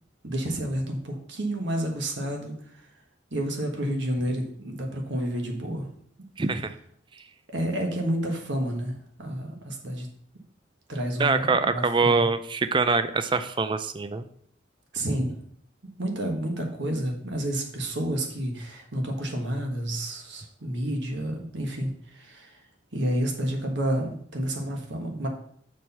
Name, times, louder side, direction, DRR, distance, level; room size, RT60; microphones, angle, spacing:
voice 1, 0.2-2.8 3.3-5.9 7.5-10.1 10.9-12.3 14.9-15.4 16.0-22.6 22.9-25.3, right 1 dB, 65° right, 2 dB, 1.5 m, -30 dB
voice 2, 6.4-6.7 11.2-14.2, right 4 dB, 25° right, 11 dB, 0.4 m, -24 dB
6.4 x 4.4 x 5.5 m, 0.63 s
head